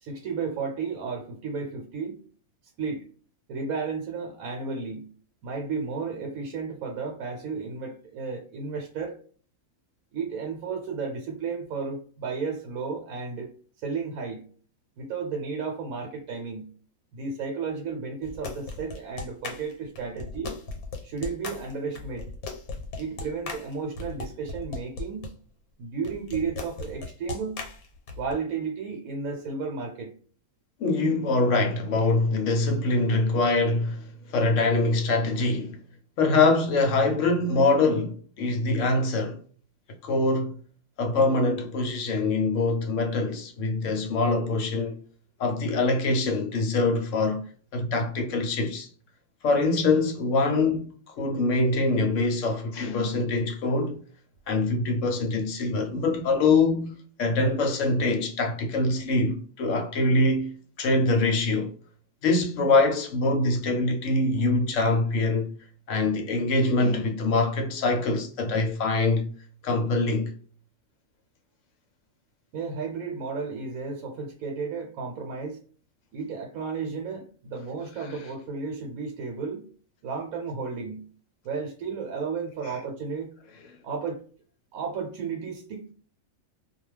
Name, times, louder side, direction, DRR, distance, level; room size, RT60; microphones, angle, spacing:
voice 1, 0.0-2.2 2.8-3.0 3.5-5.1 5.4-9.2 10.1-13.5 13.8-14.4 15.0-16.7 17.1-20.6 21.0-22.3 23.0-25.3 25.8-27.6 28.2-30.1 72.5-75.6 76.1-79.7 80.0-81.1 81.4-83.3 83.8-84.2 84.7-85.8, right 5 dB, 80° right, 1.1 m, -33 dB
sound 1, 18.2-25.3 26.0-28.3, left 3 dB, 85° left, 1.2 m, -37 dB
voice 2, 30.8-35.8 36.2-39.4 40.0-40.6 41.0-45.0 45.4-48.9 49.4-54.0 54.5-56.9 57.2-60.5 60.8-61.7 62.2-65.5 65.9-69.2 69.6-70.3, left 3 dB, 65° left, 0.9 m, -24 dB
2.3 x 2.3 x 3.1 m
omnidirectional pair, 1.5 m